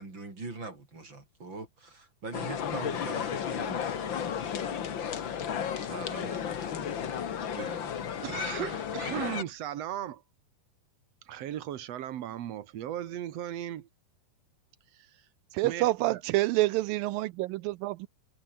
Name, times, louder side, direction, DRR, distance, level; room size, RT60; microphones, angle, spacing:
voice 1, 0.0-5.4 5.8-7.0 7.6-7.9, right 3 dB, 30° right, 6.1 m, -43 dB
sound 1, 2.3-9.4, left 8 dB, 70° left, 1.1 m, -33 dB
voice 2, 8.2-10.2 11.3-13.9 15.6-15.8 16.1-16.2, right 11 dB, 70° right, 1.6 m, -36 dB
voice 3, 15.5-18.1, right 19 dB, 85° right, 2.1 m, -27 dB
omnidirectional pair, 4.7 m